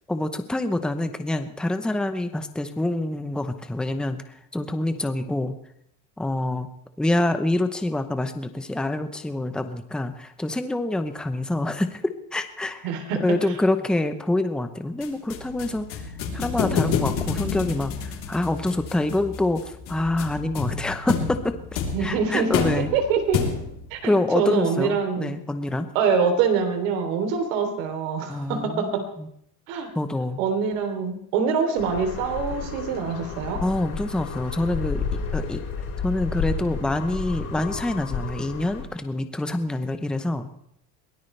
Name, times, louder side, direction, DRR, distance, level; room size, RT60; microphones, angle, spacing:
voice 1, 0.1-5.5 6.2-6.7 7.0-12.0 12.3-12.9 13.2-21.5 22.0-22.9 24.0-25.9 28.3-29.3 29.9-30.4 33.6-35.6 36.0-40.5, left 1 dB, ahead, 8 dB, 0.7 m, -26 dB
voice 2, 12.8-13.4 21.9-23.4 23.9-25.3 25.9-29.1 29.7-29.9 30.4-33.6, right 6 dB, 85° right, 5 dB, 3.3 m, -25 dB
sound 1, 15.0-23.9, left 6 dB, 55° left, 3.5 m, -29 dB
sound 2, 31.8-38.8, left 5 dB, 40° left, 4.4 m, -32 dB
22.5 x 17.5 x 3.3 m, 0.72 s
cardioid pair, 150°, 39 cm